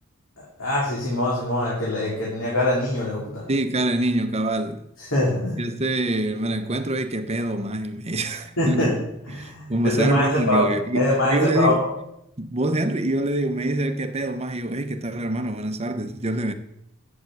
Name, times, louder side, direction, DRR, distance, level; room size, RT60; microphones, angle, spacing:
voice 1, 0.4-3.4 5.0-5.6 8.6-9.0 9.3-10.7 10.9-11.8, left 1 dB, 70° left, 3.3 m, -23 dB
voice 2, 3.5-4.9 5.6-8.9 9.3-11.9 12.4-16.5, right 1 dB, 30° right, 0.8 m, -25 dB
8.2 x 7.3 x 8.1 m
head